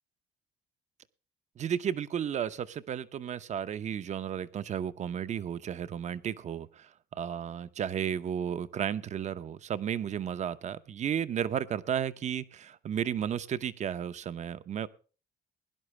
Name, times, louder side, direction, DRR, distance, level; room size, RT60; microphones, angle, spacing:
voice 1, 1.6-14.9, right 9 dB, 45° right, 13 dB, 0.8 m, -33 dB
18.5 x 11.0 x 3.3 m, 0.36 s
cardioid pair, 110°, 17 cm